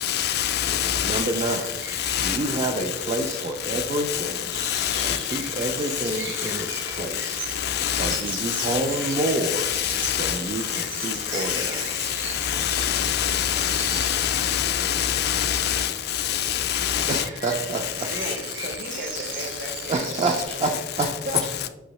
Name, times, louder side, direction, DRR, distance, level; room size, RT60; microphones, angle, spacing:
voice 1, 0.0-1.6 2.0-2.4 3.7-3.8 4.1-4.2 4.5-5.7 6.5-6.6 7.6-10.4 10.7-11.7 12.0-17.2, left 10 dB, 55° left, 0.4 m, -25 dB
sound 1, 0.7-20.4, right 4 dB, 85° right, 0.8 m, -39 dB
voice 2, 1.0-1.8 2.2-4.6 5.0-7.4 8.0-9.7 10.2-12.2 17.1-18.1 19.9-21.1, right 2 dB, 30° right, 0.3 m, -28 dB
voice 3, 18.1-21.4, right 2 dB, 55° right, 0.7 m, -36 dB
6.2 x 2.7 x 3.0 m
head